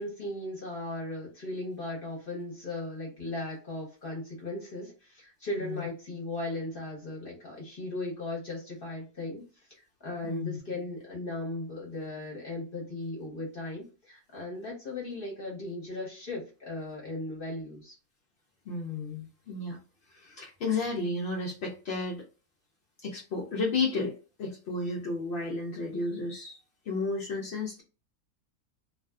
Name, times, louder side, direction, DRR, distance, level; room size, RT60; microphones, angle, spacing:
voice 1, 0.0-18.0, left 2 dB, 45° left, -3 dB, 0.8 m, -37 dB
voice 2, 10.2-10.6 18.7-19.8 20.1-22.2 23.0-24.1 24.4-26.6 26.9-27.8, left 3 dB, 75° left, -2 dB, 0.5 m, -32 dB
2.5 x 2.3 x 2.2 m, 0.34 s
omnidirectional pair, 1.7 m